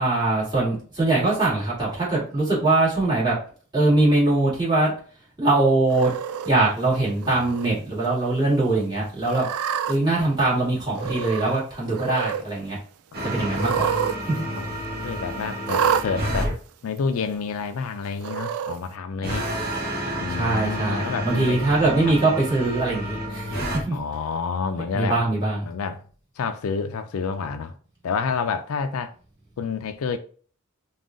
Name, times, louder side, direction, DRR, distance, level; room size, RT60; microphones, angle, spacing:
voice 1, 0.0-3.4 3.7-4.9 5.4-6.1 6.4-9.5 9.9-12.8 13.2-14.0 20.3-24.0 24.9-25.6, right 2 dB, 20° right, 1.9 m, -22 dB
Cat, 5.9-6.5 7.2-7.7 8.0-8.1 9.2-10.0 10.9-11.6 11.9-12.4 13.5-14.2 14.4-14.5 15.6-16.1 17.0-17.1 18.2-18.8, right 8 dB, 85° right, 0.3 m, -27 dB
sound 1, 13.1-16.5 19.2-23.8, equal, 45° right, 1.1 m, -30 dB
voice 2, 14.5-16.5 16.8-19.5 20.2-21.6 22.1-22.2 23.9-25.2 25.7-26.0 26.4-27.8 28.0-29.1 29.6-30.2, left 5 dB, 75° left, 0.4 m, -29 dB
3.7 x 2.3 x 3.7 m
head